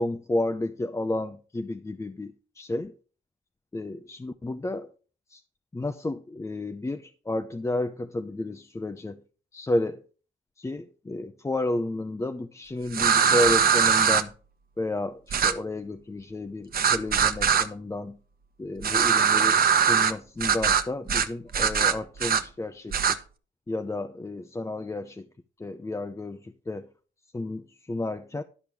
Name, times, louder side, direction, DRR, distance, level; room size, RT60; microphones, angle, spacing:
voice 1, 0.0-2.9 3.7-4.9 5.3-5.4 5.7-9.2 9.5-10.0 10.6-14.3 14.8-18.2 18.6-23.2 23.7-25.3 25.6-26.9 27.3-28.4, left 2 dB, 15° left, 0.7 m, -31 dB
sound 1, 12.9-14.2 15.3-15.5 16.7-17.7 18.8-20.1 20.4-20.8 21.1-21.3 21.5-22.4 22.9-23.2, right 7 dB, 50° right, 1.1 m, -21 dB
12.0 x 5.1 x 6.1 m
cardioid pair, 90°, 20 cm